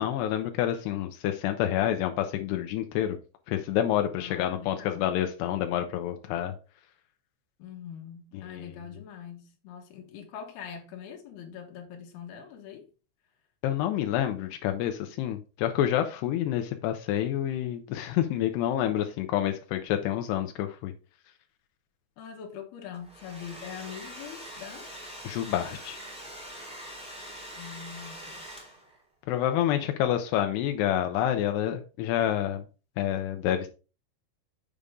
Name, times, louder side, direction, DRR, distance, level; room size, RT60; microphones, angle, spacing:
voice 1, 0.0-3.2 3.5-6.5 8.5-8.7 13.6-20.9 25.2-26.0 29.3-32.7 33.0-33.7, left 11 dB, 85° left, 2.3 m, -28 dB
voice 2, 4.2-5.1 7.6-12.9 22.2-24.9 27.6-28.5, left 8 dB, 70° left, 2.7 m, -43 dB
Domestic sounds home sounds, 22.9-29.0, equal, 5° right, 0.8 m, -43 dB
6.8 x 6.6 x 3.6 m
omnidirectional pair, 5.8 m